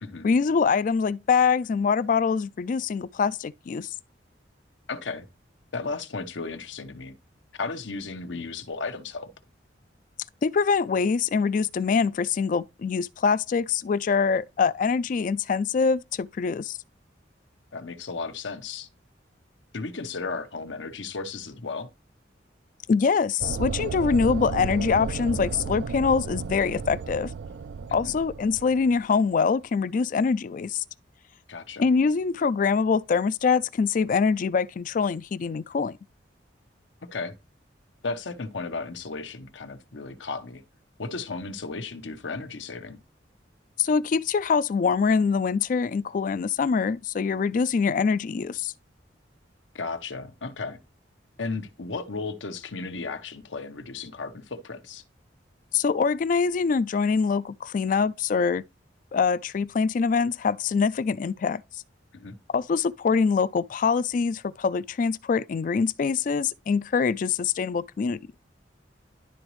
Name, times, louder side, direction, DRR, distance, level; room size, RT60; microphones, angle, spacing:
voice 1, 0.2-3.9 10.4-16.8 22.9-27.3 27.9-30.8 31.8-36.0 43.8-48.7 55.7-58.6 59.1-61.6 62.5-68.2, left 5 dB, 45° left, 0.3 m, -24 dB
voice 2, 4.9-5.3 5.7-7.2 7.6-9.3 17.7-18.9 19.7-21.9 27.9-28.1 31.5-31.9 37.0-37.3 38.0-40.6 41.0-43.0 49.7-50.8 51.4-55.0 62.1-62.4, left 4 dB, 85° left, 0.9 m, -34 dB
sound 1, 23.4-29.0, right 5 dB, 70° right, 0.4 m, -33 dB
11.5 x 4.0 x 3.1 m
head